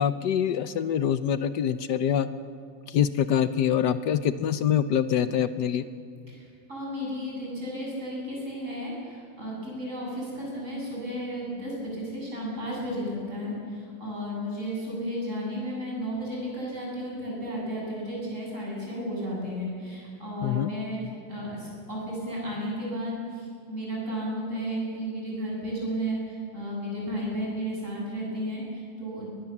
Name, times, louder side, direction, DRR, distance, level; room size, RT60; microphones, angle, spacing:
voice 1, 0.0-2.3 2.9-5.8 20.4-20.7, left 9 dB, 65° left, 12 dB, 1.2 m, -25 dB
voice 2, 6.3-29.3, equal, 35° right, -4 dB, 8.2 m, -33 dB
22.5 x 21.0 x 7.2 m, 2.2 s
omnidirectional pair, 2.3 m